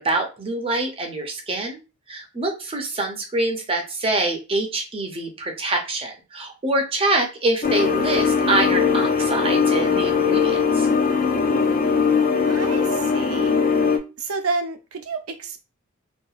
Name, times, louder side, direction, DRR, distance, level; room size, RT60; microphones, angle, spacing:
voice 1, 0.0-1.8 2.1-10.9, right 2 dB, 25° right, 3 dB, 0.5 m, -25 dB
sound 1, 7.6-14.0, left 5 dB, 40° left, 0.4 m, -20 dB
voice 2, 12.4-13.6 14.2-15.6, right 3 dB, 80° right, 7 dB, 0.5 m, -29 dB
2.7 x 2.2 x 2.4 m, 0.29 s
head